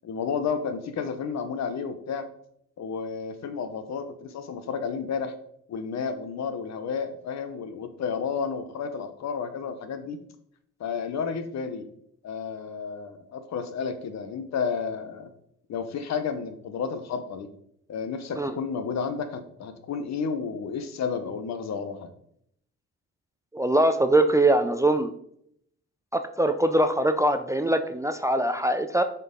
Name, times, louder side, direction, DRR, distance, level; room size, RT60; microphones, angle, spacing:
voice 1, 0.0-2.3 2.8-5.3 5.7-10.2 10.8-11.9 12.2-15.3 15.7-17.5 17.9-22.1, left 6 dB, 60° left, 9 dB, 0.9 m, -31 dB
voice 2, 23.5-25.1 26.1-29.0, right 1 dB, 10° right, 8 dB, 0.4 m, -22 dB
6.4 x 4.6 x 3.7 m, 0.70 s
cardioid pair, 90°, 30 cm